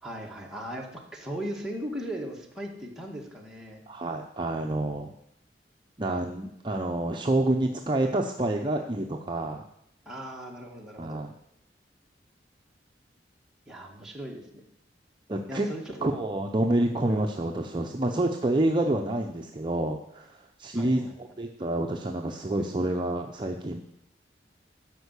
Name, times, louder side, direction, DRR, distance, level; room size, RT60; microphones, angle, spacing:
voice 1, 0.0-3.8 10.1-11.3 13.7-14.5 15.5-16.0 20.8-21.2, equal, 5° right, -2 dB, 2.0 m, -38 dB
voice 2, 3.9-5.1 6.0-9.7 11.0-11.3 15.3-15.7 16.0-21.1 21.4-23.8, right 1 dB, 25° right, 2 dB, 0.7 m, -28 dB
13.0 x 5.4 x 8.2 m, 0.79 s
head